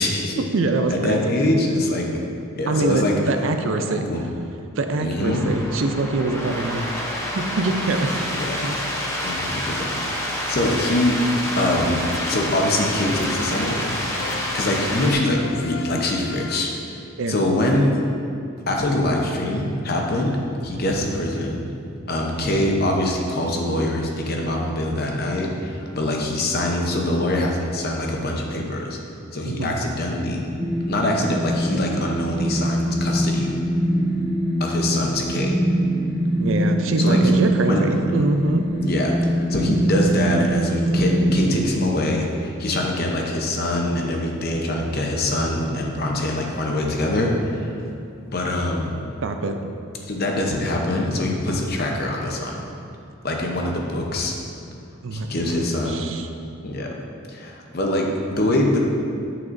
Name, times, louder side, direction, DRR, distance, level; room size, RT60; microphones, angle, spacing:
voice 1, 0.0-0.4 0.9-2.1 2.6-3.1 3.8-4.2 5.0-5.4 8.3-8.6 9.2-11.2 11.6-12.0 12.3-14.0 14.5-16.7 17.3-17.9 18.7-20.4 20.6-21.6 22.1-29.0 29.3-30.4 30.9-33.5 34.6-35.5 37.0-37.2 37.6-37.9 38.8-47.7 48.3-49.0 50.0-52.7 53.2-54.3 55.1-56.0 56.6-56.9 57.3-58.8, left 1 dB, 45° left, 0 dB, 0.7 m, -24 dB
voice 2, 0.5-1.3 2.7-4.0 4.8-6.8 7.3-8.2 8.6-8.8 9.0-9.4 17.2-17.4 29.5-29.8 36.4-38.6 49.2-49.6 55.0-55.3 55.9-56.3, right 3 dB, 65° right, 6 dB, 0.5 m, -24 dB
sound 1, 5.2-15.1, equal, 15° left, 0.7 m, -28 dB
sound 2, 12.0-12.7 13.1-13.7 14.2-14.8 15.3-16.9, left 6 dB, 65° left, 0.4 m, -37 dB
sound 3, 30.6-41.8, right 1 dB, 10° right, 1.2 m, -23 dB
9.1 x 6.0 x 2.6 m, 2.6 s
head